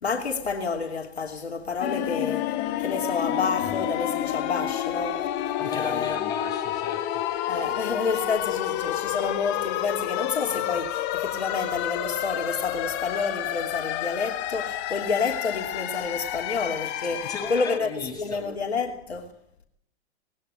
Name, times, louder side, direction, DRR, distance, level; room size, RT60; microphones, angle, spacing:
voice 1, 0.0-5.3 5.7-6.2 7.5-17.9 18.2-19.3, left 4 dB, 70° left, 3.1 m, -29 dB
sound 1, 1.8-17.8, left 12 dB, 30° left, 1.4 m, -29 dB
voice 2, 5.6-7.3 17.1-18.4, left 3 dB, 10° left, 7.6 m, -36 dB
19.5 x 18.5 x 9.8 m
figure-of-eight pair, 105°, 33 cm